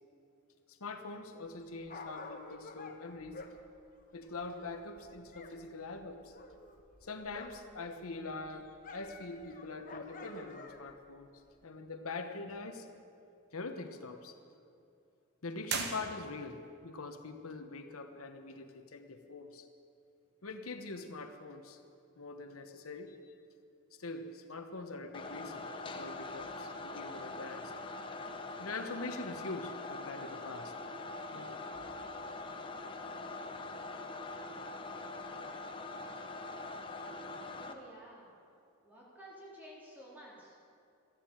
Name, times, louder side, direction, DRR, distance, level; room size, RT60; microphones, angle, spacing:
voice 1, 0.7-3.4 4.1-6.3 7.0-11.3 11.6-12.9 13.5-14.4 15.4-19.7 20.4-21.8 22.2-23.3 23.9-27.7 28.6-30.7 31.3-32.1, left 3 dB, 85° left, 6 dB, 1.1 m, -44 dB
Dog, 1.5-5.6 5.8-7.7 8.0-11.0 11.6-11.7, left 3 dB, 40° left, 1.1 m, -50 dB
sound 1, 15.6-16.7, right 5 dB, 50° right, 1.3 m, -38 dB
sound 2, 25.1-37.7, left 3 dB, 25° left, 0.8 m, -43 dB
voice 2, 37.5-38.3 38.8-40.6, equal, 10° right, -6 dB, 3.6 m, -52 dB
14.0 x 10.5 x 8.7 m, 2.5 s
head